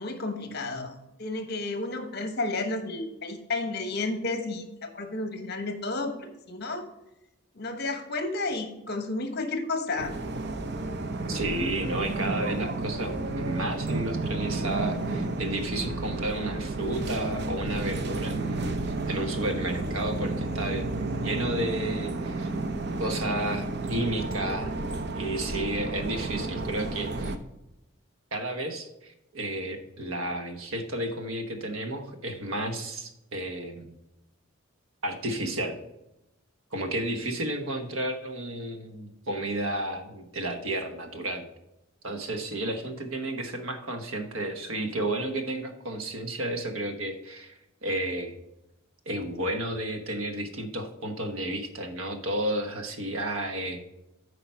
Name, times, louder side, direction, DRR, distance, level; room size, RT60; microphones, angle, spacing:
voice 1, 0.0-6.9 7.5-10.1, left 2 dB, 50° left, 7 dB, 1.2 m, -32 dB
sound 1, 10.0-27.4, right 2 dB, 50° right, 0.7 m, -32 dB
voice 2, 11.3-22.5 23.0-24.8 25.1-27.3 28.3-33.9 35.0-35.8 36.7-41.4 42.0-47.5 47.8-48.3 49.1-53.9, right 1 dB, 75° right, 6 dB, 1.2 m, -32 dB
8.8 x 4.9 x 5.6 m, 0.90 s
head